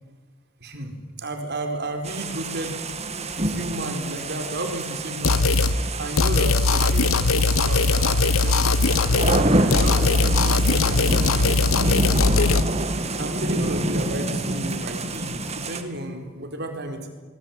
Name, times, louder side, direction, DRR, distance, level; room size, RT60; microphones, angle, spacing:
voice 1, 0.6-2.7 3.4-5.6 6.0-8.7 9.3-12.1 13.2-17.1, right 1 dB, 55° right, 5 dB, 4.6 m, -32 dB
sound 1, 2.0-15.8, right 2 dB, 30° right, 2.4 m, -27 dB
sound 2, 5.2-5.8 6.2-9.5 9.7-12.6, left 3 dB, 85° left, 1.1 m, -20 dB
28.0 x 22.0 x 9.2 m, 1.4 s
head